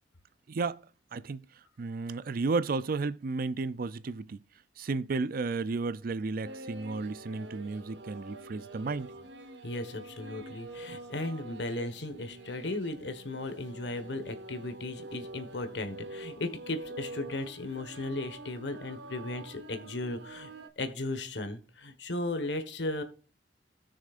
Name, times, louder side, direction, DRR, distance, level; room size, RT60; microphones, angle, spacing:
voice 1, 0.5-0.8 1.1-1.4 1.8-4.4 4.8-9.1, right 3 dB, 55° right, 0.5 m, -33 dB
sound 1, 6.4-20.7, right 2 dB, 75° right, 1.0 m, -46 dB
voice 2, 9.6-23.0, left 2 dB, 75° left, 1.4 m, -36 dB
17.5 x 6.4 x 2.5 m
head